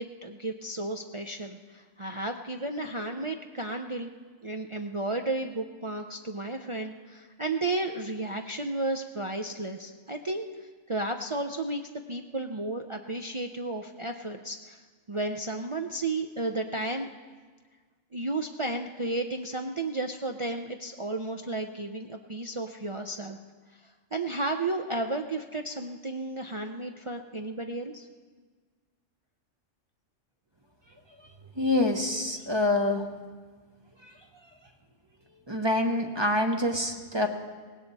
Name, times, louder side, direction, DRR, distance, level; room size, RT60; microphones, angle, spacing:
voice 1, 0.0-4.1 4.4-11.8 12.1-14.8 15.1-17.1 18.1-23.4 24.1-28.1, right 2 dB, 45° right, 3 dB, 0.4 m, -33 dB
voice 2, 31.6-33.1 35.5-37.3, left 1 dB, 20° right, 4 dB, 0.9 m, -26 dB
18.0 x 16.5 x 4.1 m, 1.5 s
omnidirectional pair, 1.4 m